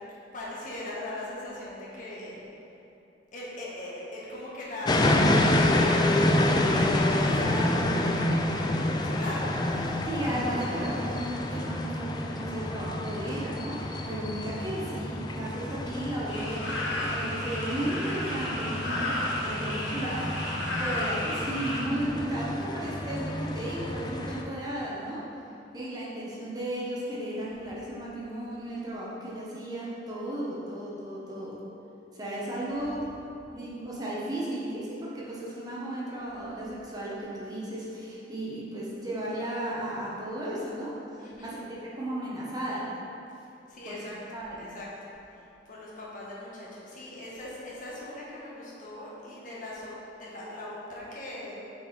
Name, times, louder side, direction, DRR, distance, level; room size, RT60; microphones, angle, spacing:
voice 1, 0.3-2.4 3.3-5.2 5.6-10.3 17.6-18.2 19.4-20.7 41.2-41.5 43.7-44.9 45.3-51.5, left 1 dB, 45° left, -6 dB, 1.3 m, -40 dB
sound 1, 4.9-24.4, left 1 dB, 25° left, 0.4 m, -28 dB
voice 2, 10.0-20.2 20.8-25.2 25.7-31.6 32.1-33.1 33.5-40.9 41.4-41.6 41.9-42.9 43.9-44.0 44.3-44.7, right 1 dB, 20° right, -7 dB, 1.1 m, -34 dB
sound 2, 16.3-21.8, left 1 dB, 80° left, 1.1 m, -33 dB
5.8 x 4.7 x 4.3 m, 2.7 s
head